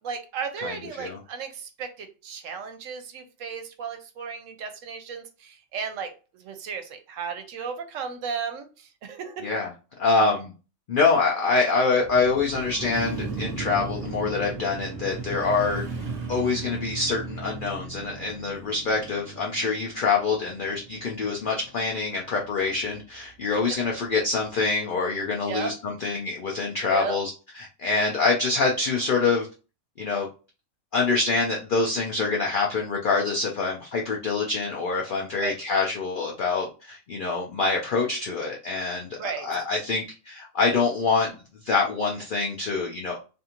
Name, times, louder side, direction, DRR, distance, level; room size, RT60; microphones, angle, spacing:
voice 1, 0.0-6.1 6.4-9.5 23.5-23.6 25.4-25.7 26.9-27.2 35.4-35.5 39.2-39.5, right 6 dB, 70° right, 7 dB, 0.9 m, -34 dB
voice 2, 0.6-1.2 9.4-9.7 10.0-10.5 10.9-15.8 16.3-27.3 27.5-29.5 30.0-30.3 30.9-41.3 41.6-43.2, left 4 dB, 70° left, -1 dB, 0.5 m, -25 dB
Motorcycle, 12.0-22.1 22.5-22.6, right 4 dB, 40° right, 0.6 m, -36 dB
2.6 x 2.5 x 2.8 m, 0.34 s
omnidirectional pair, 1.5 m